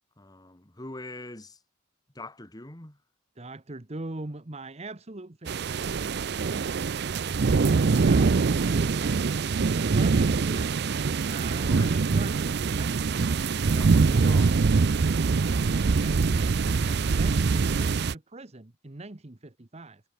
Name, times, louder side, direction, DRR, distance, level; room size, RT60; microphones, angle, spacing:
voice 1, 0.2-1.6 2.2-3.0 11.6-12.0 13.7-14.7, left 2 dB, 20° left, 1.8 m, -43 dB
voice 2, 3.4-5.8 8.0-9.4 9.7-10.7 11.3-13.0 15.9-20.0, right 2 dB, 30° right, 1.1 m, -41 dB
sound 1, 5.5-18.2, right 4 dB, 55° right, 0.5 m, -24 dB
head